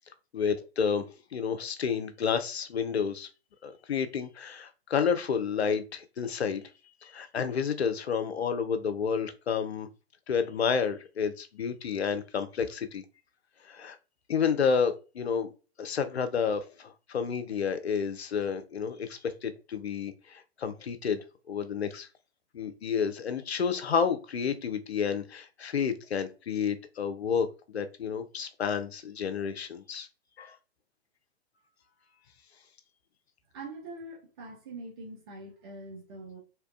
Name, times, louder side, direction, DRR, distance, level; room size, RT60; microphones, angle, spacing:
voice 1, 0.3-1.1 1.3-3.3 3.6-6.6 7.0-9.9 10.3-13.0 13.7-14.0 14.3-15.5 15.8-22.1 22.5-30.1 30.4-30.6, left 6 dB, 75° left, 0.5 m, -30 dB
voice 2, 33.5-36.4, right 2 dB, 25° right, 0.5 m, -43 dB
2.8 x 2.2 x 2.3 m
figure-of-eight pair, 115°, 33 cm